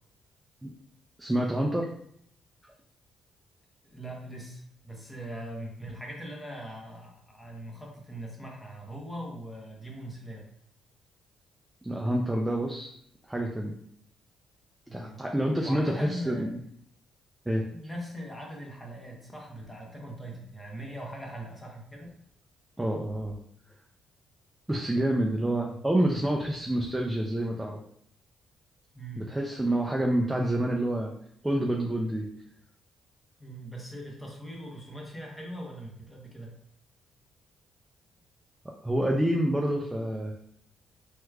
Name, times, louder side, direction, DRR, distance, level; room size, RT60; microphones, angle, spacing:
voice 1, 1.2-1.9 11.8-12.9 13.3-13.8 14.9-16.6 17.5-17.6 22.8-23.4 24.7-27.8 29.2-31.1 31.4-32.3 38.8-40.3, right 1 dB, 10° right, 0 dB, 0.4 m, -27 dB
voice 2, 3.8-10.5 14.9-15.2 15.6-16.5 17.6-22.1 25.5-25.8 28.9-29.4 33.4-36.5, equal, 10° left, -1 dB, 0.9 m, -41 dB
3.4 x 2.9 x 2.3 m, 0.69 s
cardioid pair, 90°, 0 cm